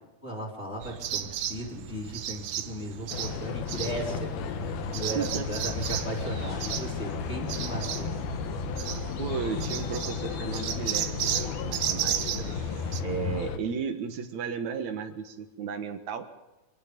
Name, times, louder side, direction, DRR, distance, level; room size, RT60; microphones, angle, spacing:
voice 1, 0.2-4.3 4.6-8.1, right 1 dB, 20° left, -1 dB, 3.9 m, -36 dB
sound 1, 0.8-13.0, right 11 dB, 85° right, 1.4 m, -35 dB
sound 2, 3.1-13.6, left 7 dB, 80° left, 2.9 m, -34 dB
voice 2, 5.1-5.5 9.2-12.5 13.0-16.3, right 6 dB, 60° right, 8 dB, 2.4 m, -34 dB
25.5 x 19.5 x 5.3 m, 1.1 s
omnidirectional pair, 4.5 m